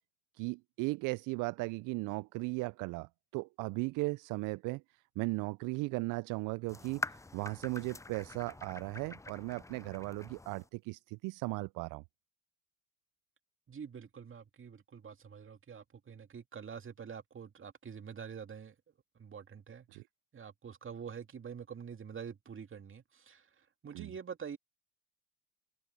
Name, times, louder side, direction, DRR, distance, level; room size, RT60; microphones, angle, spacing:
voice 1, 0.3-12.0 19.9-20.0 23.9-24.1, right 25 dB, 60° right, 0.6 m, -37 dB
sound 1, 6.7-10.7, left 3 dB, 10° left, 0.6 m, -45 dB
voice 2, 13.7-18.7 19.2-19.9 20.3-23.4 23.8-24.6, right 7 dB, 35° right, 2.6 m, -46 dB
hypercardioid pair, 60°, 35 cm